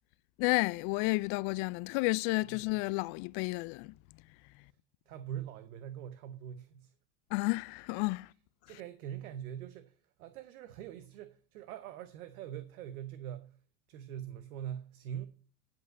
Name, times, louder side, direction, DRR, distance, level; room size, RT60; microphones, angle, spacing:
voice 1, 0.4-3.9 7.3-8.3, left 24 dB, 60° left, 0.5 m, -31 dB
voice 2, 5.1-6.9 8.7-13.6 13.9-15.3, right 10 dB, 80° right, 0.9 m, -43 dB
10.5 x 5.4 x 6.2 m
hypercardioid pair, 90°, 42 cm